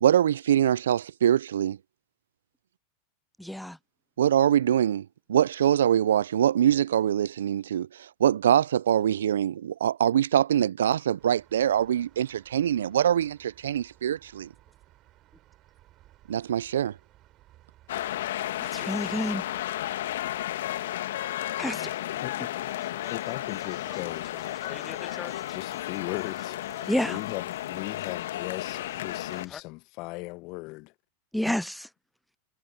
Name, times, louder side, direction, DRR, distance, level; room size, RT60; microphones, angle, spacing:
voice 1, 0.0-1.8 4.2-7.9 8.2-14.5 16.3-16.9, right 10 dB, 75° right, 0.5 m, -24 dB
voice 2, 3.4-3.8 18.7-19.4 21.6-21.9 26.9-27.2 31.3-31.9, left 1 dB, ahead, 0.4 m, -29 dB
sound 1, 11.2-20.5, right 15 dB, 40° right, 5.6 m, -59 dB
sound 2, 17.9-29.5, left 13 dB, 70° left, 1.8 m, -33 dB
sound 3, 21.4-29.6, left 7 dB, 25° left, 1.9 m, -48 dB
voice 3, 21.6-24.3 25.5-26.6 27.0-30.9 31.4-31.6, left 24 dB, 50° left, 1.1 m, -38 dB
hypercardioid pair, 95°, 0 cm